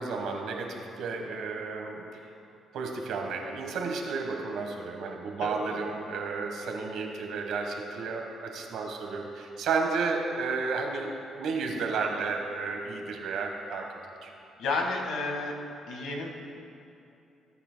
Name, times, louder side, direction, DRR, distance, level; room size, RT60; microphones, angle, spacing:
voice 1, 0.0-2.0 2.7-14.3, right 4 dB, 80° right, 3 dB, 1.3 m, -32 dB
voice 2, 5.4-5.8 14.6-15.5 15.9-16.6, left 3 dB, 90° left, 1 dB, 1.6 m, -32 dB
18.5 x 8.7 x 2.2 m, 2.7 s
cardioid pair, 90°, 0 cm